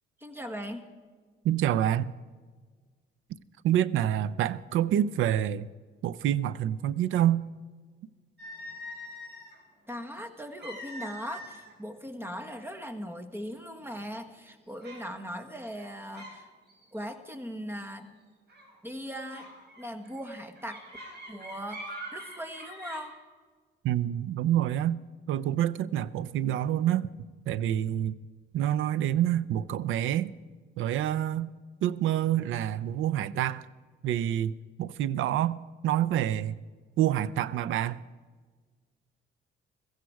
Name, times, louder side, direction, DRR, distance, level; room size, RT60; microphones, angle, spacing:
voice 1, 0.2-0.9 9.9-16.5 16.9-18.1 18.8-19.5 19.8-20.8 21.3-21.8 22.1-23.1, equal, 10° right, 1.5 m, -39 dB
voice 2, 1.4-2.1 3.6-5.7 6.0-7.4 23.8-25.0 25.3-27.1 27.5-28.1 28.5-30.3 30.8-31.5 31.8-33.7 34.0-34.5 34.8-35.6 35.8-36.6 37.0-38.0, right 11 dB, 85° right, 0.6 m, -27 dB
sound 1, 8.4-9.6 10.6-11.7 12.1-12.3 13.0-13.1 13.6-14.0 14.8-15.1 15.7-16.4 16.7-17.0 18.5-18.7 19.3-23.0, equal, 60° right, 4.4 m, -44 dB
16.0 x 15.0 x 4.7 m
cardioid pair, 90°, 20 cm